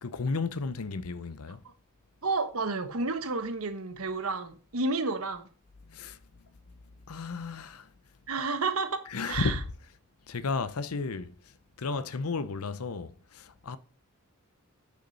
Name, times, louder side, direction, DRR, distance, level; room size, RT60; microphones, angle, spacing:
voice 1, 0.0-1.6 5.9-6.2 7.1-7.9 9.1-9.6 10.3-11.3 11.8-13.8, left 4 dB, 85° left, 0.7 m, -33 dB
voice 2, 2.2-5.5 8.3-9.6, right 3 dB, 75° right, 1.1 m, -31 dB
8.5 x 6.5 x 5.4 m
head